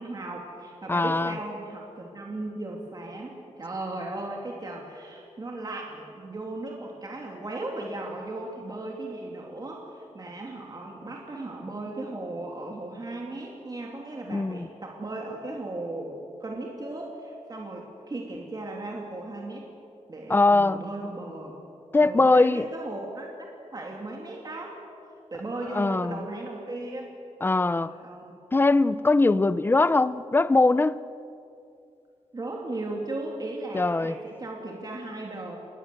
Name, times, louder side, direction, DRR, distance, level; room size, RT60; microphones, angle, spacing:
voice 1, 0.0-19.7 20.1-21.5 22.0-24.8 25.3-27.1 27.6-28.4 32.3-35.6, right 2 dB, 35° right, -1 dB, 2.9 m, -36 dB
voice 2, 0.9-1.3 14.3-14.7 20.3-20.8 21.9-22.7 25.7-26.3 27.4-27.9 28.5-31.0 33.7-34.2, left 2 dB, 20° left, 16 dB, 0.6 m, -21 dB
27.5 x 21.0 x 7.8 m, 2.6 s
wide cardioid pair, 170°, 12 cm